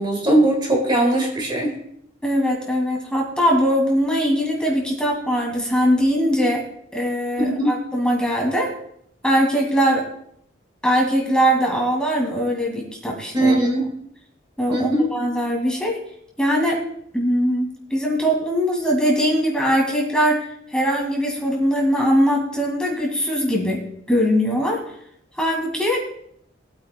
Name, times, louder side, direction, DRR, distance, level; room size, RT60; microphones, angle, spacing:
voice 1, 0.0-1.7 7.4-7.8 13.3-13.9 14.7-15.1, right 1 dB, 25° right, 0 dB, 1.9 m, -19 dB
voice 2, 2.2-6.6 6.9-8.7 9.2-10.1 10.8-13.5 14.6-16.0 16.4-16.8 17.1-20.4 20.7-23.8 24.1-24.8 25.4-26.0, equal, 5° left, -1 dB, 2.0 m, -21 dB
19.5 x 8.6 x 2.2 m, 0.69 s
head